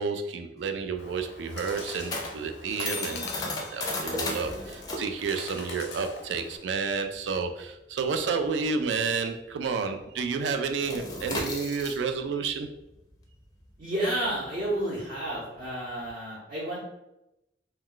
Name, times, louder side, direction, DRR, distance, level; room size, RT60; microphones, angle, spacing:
voice 1, 0.0-12.7, right 5 dB, 85° right, 7 dB, 0.3 m, -30 dB
sound 1, 0.6-9.5 9.8-10.1 10.4-16.1, left 2 dB, 20° left, 0.4 m, -36 dB
Bird, 1.0-6.6, left 4 dB, 80° left, 0.5 m, -43 dB
voice 2, 13.8-16.8, right 1 dB, 55° right, -9 dB, 0.8 m, -31 dB
2.2 x 2.2 x 3.7 m, 0.90 s
head